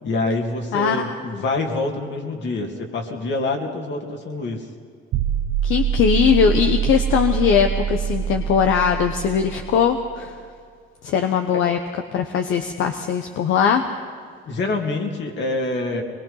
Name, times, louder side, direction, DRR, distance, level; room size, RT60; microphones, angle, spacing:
voice 1, 0.0-4.6 14.4-16.0, left 2 dB, 65° left, 2 dB, 2.9 m, -26 dB
voice 2, 0.7-1.1 5.6-10.3 11.0-11.8 12.1-13.8, left 7 dB, 80° left, 5 dB, 1.0 m, -20 dB
sound 1, 5.1-10.2, right 9 dB, 80° right, 0.8 m, -24 dB
22.5 x 21.0 x 5.7 m, 2.1 s
cardioid pair, 90°, 20 cm